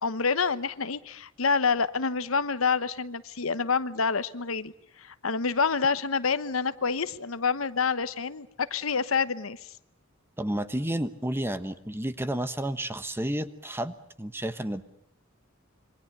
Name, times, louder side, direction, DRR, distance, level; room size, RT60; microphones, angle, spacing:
voice 1, 0.0-4.7 5.0-9.6, left 5 dB, 85° left, 13 dB, 1.1 m, -27 dB
voice 2, 10.4-14.8, right 1 dB, 10° right, 11 dB, 1.2 m, -31 dB
26.5 x 24.0 x 6.7 m, 0.77 s
head